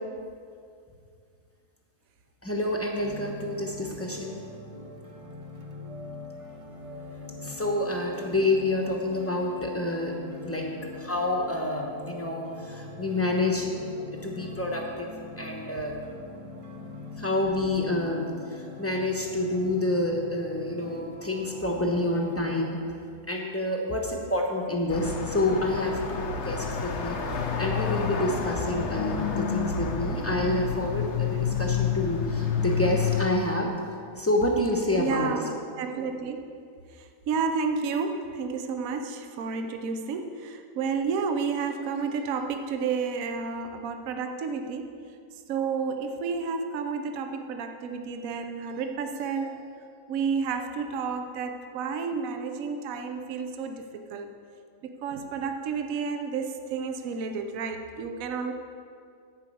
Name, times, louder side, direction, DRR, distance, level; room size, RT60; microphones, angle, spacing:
voice 1, 2.4-4.4 7.4-10.1 10.4-10.7 11.0-13.7 14.2-15.1 15.4-15.9 17.2-18.2 18.8-22.8 23.3-27.2 27.6-33.7 34.2-35.3, left 1 dB, 10° left, 0 dB, 0.8 m, -28 dB
sound 1, 3.0-22.7, left 3 dB, 40° right, 0.4 m, -43 dB
sound 2, 24.9-33.2, left 6 dB, 55° left, 0.9 m, -29 dB
voice 2, 35.0-36.5 37.3-44.9 45.5-49.7 50.1-54.3 54.8-58.5, right 5 dB, 65° right, 6 dB, 1.0 m, -31 dB
10.5 x 5.1 x 7.6 m, 2.3 s
omnidirectional pair, 1.8 m